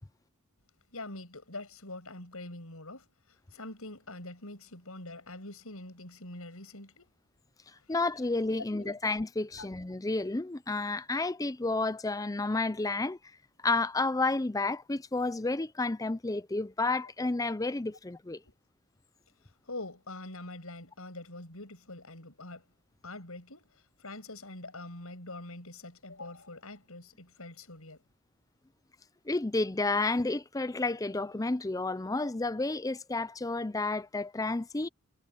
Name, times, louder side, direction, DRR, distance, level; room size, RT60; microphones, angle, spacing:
voice 1, 0.9-7.1 7.8-7.9 8.4-9.0 9.5-9.7 18.4-18.5 19.4-22.6 23.0-28.0, left 2 dB, 70° left, 7.6 m, -44 dB
voice 2, 7.9-13.2 13.6-18.4 29.3-34.9, left 3 dB, 15° left, 0.5 m, -31 dB
head